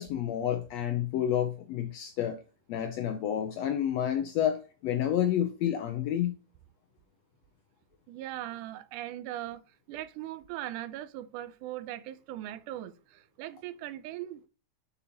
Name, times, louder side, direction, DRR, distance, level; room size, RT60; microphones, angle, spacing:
voice 1, 0.0-2.4 2.7-6.4, left 10 dB, 85° left, 1.5 m, -29 dB
voice 2, 8.1-14.5, right 13 dB, 80° right, 1.9 m, -40 dB
7.2 x 6.8 x 2.9 m
omnidirectional pair, 3.8 m